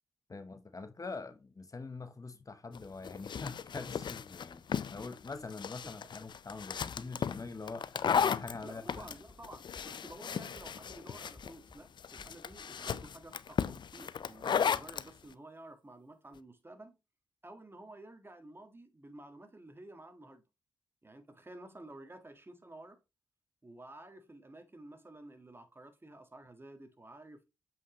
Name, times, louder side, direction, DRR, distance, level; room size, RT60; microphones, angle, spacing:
voice 1, 0.3-9.1, left 3 dB, 40° left, 0.9 m, -44 dB
sound 1, 2.7-15.1, left 7 dB, 60° left, 0.4 m, -35 dB
sound 2, 8.1-8.6 8.9-9.4 9.7-10.2 10.5-11.0 11.4-11.8 12.2-12.6 13.0-13.2, left 1 dB, 20° left, 1.2 m, -56 dB
voice 2, 8.6-17.0 17.4-20.4 21.0-23.0 23.6-27.4, right 1 dB, 25° right, 1.6 m, -52 dB
8.2 x 5.2 x 3.0 m
cardioid pair, 50°, 9 cm